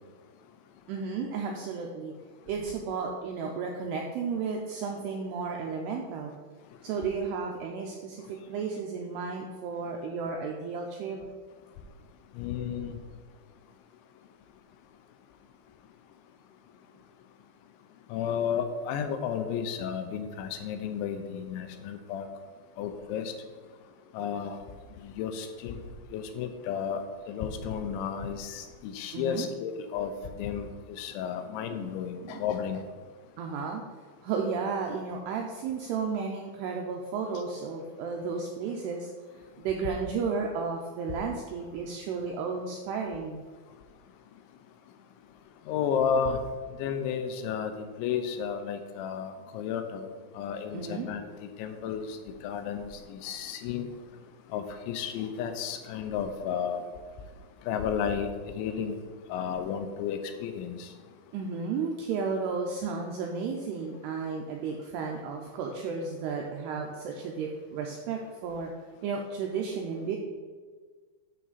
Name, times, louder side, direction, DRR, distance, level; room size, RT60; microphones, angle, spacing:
voice 1, 0.9-2.1 2.5-6.3 6.8-11.3 29.1-29.5 31.7-31.9 32.2-32.4 33.4-33.8 34.2-39.1 39.6-43.4 50.7-51.1 61.3-68.7 69.0-70.2, right 5 dB, 85° right, 1 dB, 2.3 m, -33 dB
voice 2, 12.4-13.0 18.1-22.3 22.8-23.3 24.1-24.6 25.0-25.8 26.1-27.0 27.3-30.1 30.4-32.8 45.7-46.4 46.8-50.1 50.4-51.3 51.6-52.2 52.4-53.9 54.5-56.8 57.7-58.3 58.6-58.9 59.3-60.9, left 7 dB, 85° left, 7 dB, 3.0 m, -32 dB
8.6 x 6.8 x 4.1 m, 1.5 s
omnidirectional pair, 5.5 m